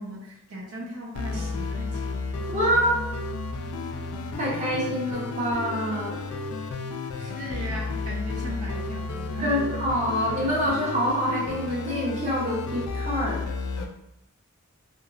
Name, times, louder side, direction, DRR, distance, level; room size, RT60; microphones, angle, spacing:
voice 1, 0.0-2.1 7.1-9.8, equal, 80° right, -3 dB, 0.6 m, -37 dB
sound 1, 1.1-13.9, left 3 dB, 80° left, 0.3 m, -32 dB
voice 2, 2.5-3.0 4.4-6.2 9.4-13.4, equal, 35° right, -5 dB, 0.7 m, -26 dB
2.8 x 2.2 x 2.3 m, 0.82 s
head